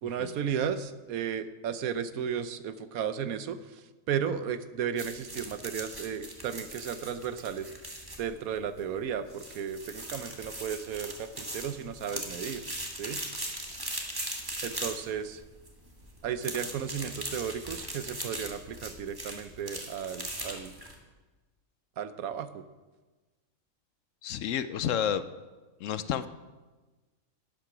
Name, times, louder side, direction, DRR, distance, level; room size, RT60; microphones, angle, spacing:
voice 1, 0.0-7.7 8.2-12.6 13.0-13.2 14.6-15.4 16.2-20.7 22.0-22.6, right 8 dB, 85° right, 12 dB, 1.2 m, -34 dB
sound 1, 5.0-21.0, right 1 dB, 15° right, 1.6 m, -40 dB
voice 2, 24.2-25.2 25.8-26.3, left 9 dB, 70° left, 13 dB, 0.9 m, -30 dB
11.5 x 9.8 x 6.0 m, 1.2 s
omnidirectional pair, 1.5 m